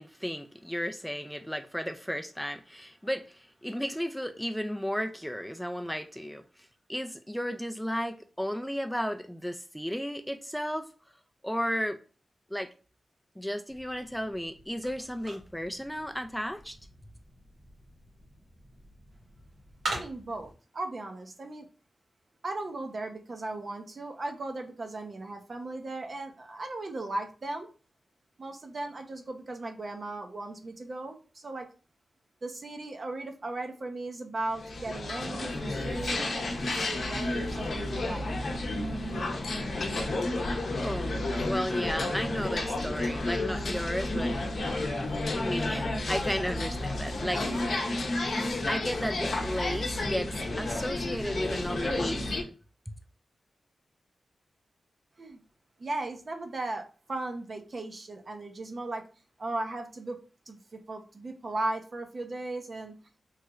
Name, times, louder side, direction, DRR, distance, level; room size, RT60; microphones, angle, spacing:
voice 1, 0.0-10.9 11.4-12.0 12.5-12.7 13.4-16.8 40.8-41.2 41.4-44.3 45.3-47.7 48.7-52.4, equal, ahead, 0.3 m, -34 dB
sound 1, 13.7-20.5, right 2 dB, 90° right, 1.1 m, -43 dB
voice 2, 19.9-21.7 22.4-27.7 28.4-31.7 32.4-38.3 55.2-55.4 55.8-59.0 59.4-60.2 60.5-62.9, right 2 dB, 50° right, 0.6 m, -37 dB
sound 2, 34.5-52.4, left 2 dB, 70° left, 0.6 m, -31 dB
3.1 x 2.9 x 2.3 m
cardioid pair, 65°, 0 cm